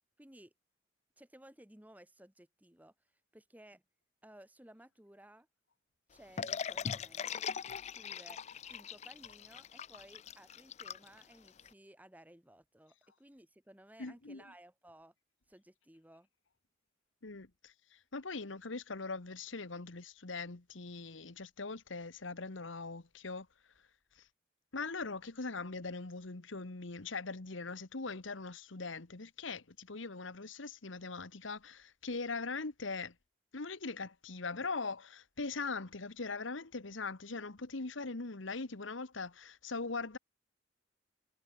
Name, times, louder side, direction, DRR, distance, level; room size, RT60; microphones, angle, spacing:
voice 1, 0.2-0.5 1.2-2.9 3.3-3.8 4.2-5.5 6.1-7.5 7.9-8.4 8.7-15.1 15.5-16.3, right 1 dB, 10° right, 1.4 m, -58 dB
sound 1, 6.4-11.7, left 7 dB, 35° left, 0.4 m, -41 dB
voice 2, 14.0-14.5 17.2-23.5 24.2-24.3 24.7-33.1 33.5-40.2, left 4 dB, 85° left, 1.4 m, -41 dB
head